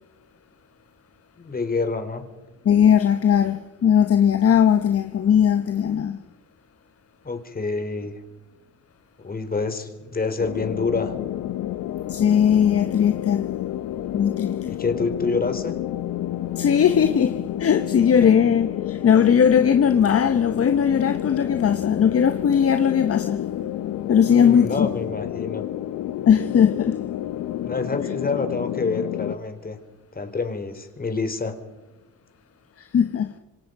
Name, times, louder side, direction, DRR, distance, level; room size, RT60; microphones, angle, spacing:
voice 1, 1.4-2.2 7.2-8.2 9.2-11.1 14.7-15.8 18.2-18.3 24.3-25.7 27.6-29.8 30.1-31.6, left 4 dB, 30° left, 3.6 m, -27 dB
voice 2, 2.6-6.2 12.1-13.5 14.1-14.8 16.5-23.5 24.1-24.9 26.3-27.0 28.0-28.1 32.8-33.3, left 8 dB, 50° left, 1.2 m, -19 dB
sound 1, 10.4-29.4, left 12 dB, 80° left, 0.9 m, -30 dB
27.0 x 25.5 x 5.5 m
cardioid pair, 90°, 30 cm